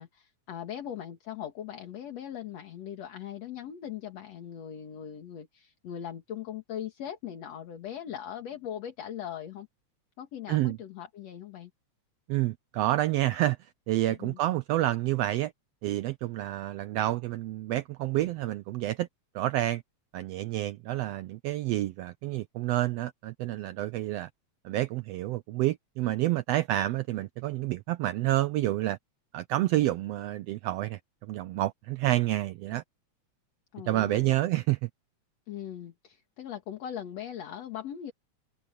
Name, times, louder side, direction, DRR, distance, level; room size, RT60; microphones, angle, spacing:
voice 1, 0.0-9.7 10.2-11.7 14.1-14.4 33.7-34.4 35.5-38.1, left 10 dB, 65° left, 2.9 m, -40 dB
voice 2, 12.3-15.5 15.8-19.1 19.3-19.8 20.1-24.3 24.6-29.0 29.3-32.8 33.9-34.9, right 15 dB, 80° right, 1.4 m, -29 dB
omnidirectional pair, 3.4 m